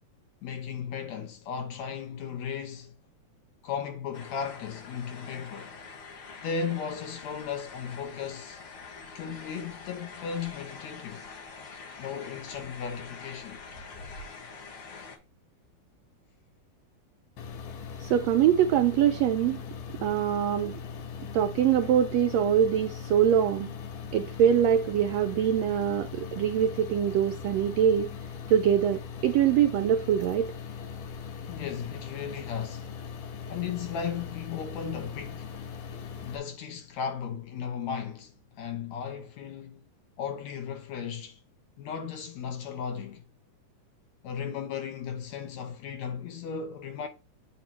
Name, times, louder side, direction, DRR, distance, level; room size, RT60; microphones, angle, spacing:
voice 1, 0.4-2.9 3.6-5.8 6.4-8.6 9.1-11.3 12.0-13.6 31.5-32.9 33.5-35.5 36.2-39.8 40.2-41.4 41.8-43.2 44.2-47.1, left 7 dB, 70° left, 2.2 m, -36 dB
sound 1, 4.1-15.2, left 4 dB, 55° left, 1.8 m, -45 dB
sound 2, 17.4-36.4, left 6 dB, 85° left, 2.7 m, -40 dB
voice 2, 18.0-19.6 20.0-20.8 21.3-23.7 24.1-28.1 28.5-30.5, right 9 dB, 90° right, 1.4 m, -24 dB
8.5 x 2.9 x 5.9 m
omnidirectional pair, 3.5 m